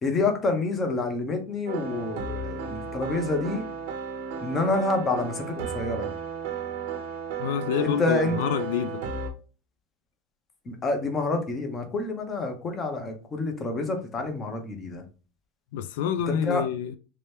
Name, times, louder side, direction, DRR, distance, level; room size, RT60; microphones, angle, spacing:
voice 1, 0.0-3.7 4.4-6.1 7.8-8.5 10.7-15.0 16.3-16.6, left 3 dB, 20° left, 0.7 m, -28 dB
sound 1, 1.7-9.3, right 6 dB, 70° right, 0.7 m, -34 dB
voice 2, 7.4-9.0 15.7-17.0, left 9 dB, 85° left, 0.3 m, -27 dB
3.2 x 2.9 x 3.2 m
cardioid pair, 180°, 0 cm